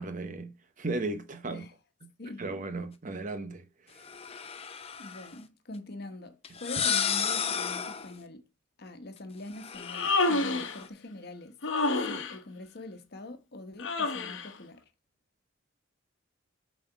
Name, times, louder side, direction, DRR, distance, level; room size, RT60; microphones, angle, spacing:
voice 1, 0.0-1.6 2.4-4.0, right 2 dB, 40° right, 0.9 m, -36 dB
sound 1, 4.0-5.3 6.4-8.2 9.5-10.9, left 7 dB, 30° left, 0.7 m, -33 dB
voice 2, 5.0-8.4 8.8-11.6 12.0-14.8, left 2 dB, 55° left, 1.2 m, -44 dB
Human voice, 9.8-10.8 11.6-12.4 13.8-14.5, left 3 dB, 80° left, 1.1 m, -28 dB
7.8 x 4.2 x 4.6 m
head